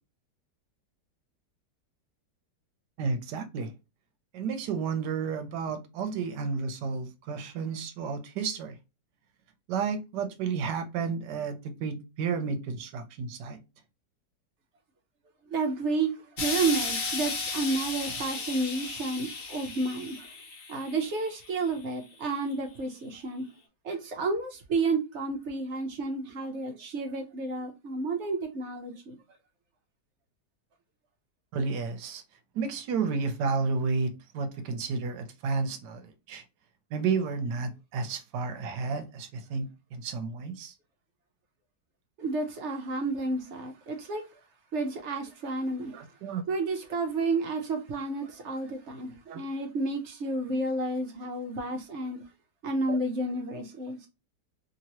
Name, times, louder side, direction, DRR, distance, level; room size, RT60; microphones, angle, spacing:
voice 1, 3.0-3.7 4.3-8.8 9.7-13.6 31.5-32.2 32.5-36.4 36.9-40.7 45.9-46.4 49.3-49.4 52.9-53.0, right 5 dB, 80° right, 1.2 m, -32 dB
voice 2, 15.5-16.1 16.4-20.3 20.7-23.4 23.8-29.1 42.2-44.2 44.7-46.0 46.5-52.2 52.6-54.1, right 3 dB, 60° right, 0.7 m, -31 dB
Explosion, 16.4-21.7 22.5-22.6, left 4 dB, 70° left, 0.4 m, -35 dB
2.9 x 2.9 x 2.8 m
omnidirectional pair, 1.9 m